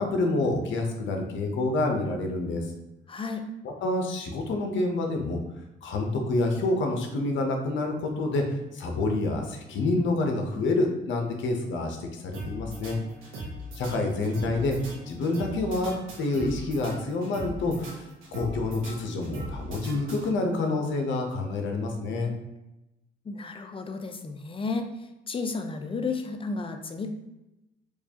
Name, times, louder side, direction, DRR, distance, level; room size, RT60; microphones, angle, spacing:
voice 1, 0.0-2.7 3.6-5.4 5.8-13.0 13.7-14.8 15.1-22.3, left 2 dB, 70° left, 3 dB, 0.7 m, -28 dB
voice 2, 3.1-3.5 23.3-24.9 25.3-27.1, left 4 dB, 25° left, 5 dB, 0.5 m, -32 dB
sound 1, 12.3-20.7, right 1 dB, 85° right, 1.1 m, -40 dB
4.7 x 2.3 x 2.8 m, 0.94 s
cardioid pair, 90°, 20 cm